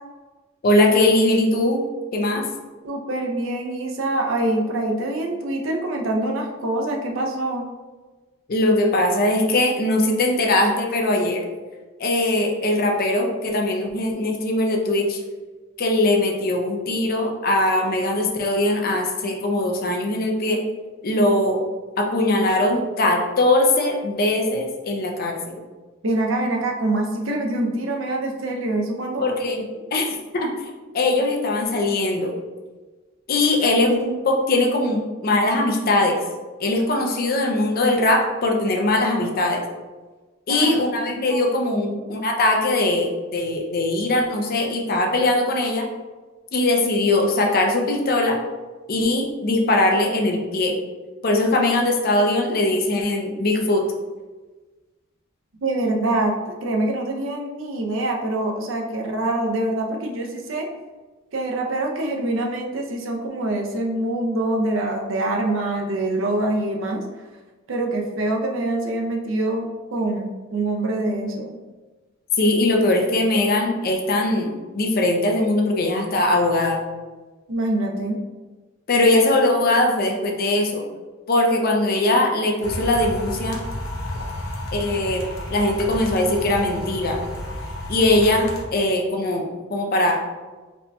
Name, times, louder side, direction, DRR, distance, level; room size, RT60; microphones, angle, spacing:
voice 1, 0.6-1.8 2.1-2.5 8.5-11.4 12.0-15.2 15.8-20.6 21.0-21.6 22.0-25.6 29.2-30.5 30.9-32.3 33.3-36.2 36.6-39.6 40.5-45.9 46.5-48.4 48.9-50.8 51.2-53.8 72.4-76.8 78.9-80.8 81.3-83.7 84.7-87.2 87.9-90.2, left 2 dB, 45° left, 1 dB, 0.5 m, -21 dB
voice 2, 2.8-7.7 26.0-29.3 40.5-40.6 41.3-41.4 41.7-41.9 55.6-60.7 61.3-67.0 67.7-71.6 77.5-78.2, right 2 dB, 70° right, 1 dB, 0.6 m, -25 dB
sound 1, 82.6-88.6, left 1 dB, 90° left, 0.7 m, -32 dB
4.2 x 2.7 x 2.2 m, 1.3 s
head